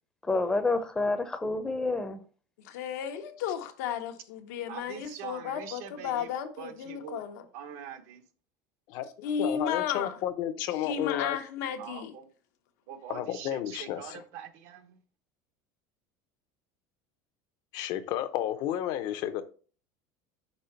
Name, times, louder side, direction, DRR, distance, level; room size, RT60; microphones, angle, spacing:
voice 1, 0.2-2.2, left 3 dB, 10° left, 0.6 m, -28 dB
voice 2, 2.6-7.4 9.2-10.2 10.8-12.1, left 8 dB, 85° left, 1.0 m, -34 dB
voice 3, 4.7-7.2 7.5-8.2 11.8-12.3 12.9-15.0, right 8 dB, 75° right, 1.0 m, -44 dB
voice 4, 9.4-11.4 13.1-14.0 17.7-19.4, left 11 dB, 55° left, 0.6 m, -32 dB
5.4 x 4.3 x 4.4 m
cardioid pair, 165°, 9 cm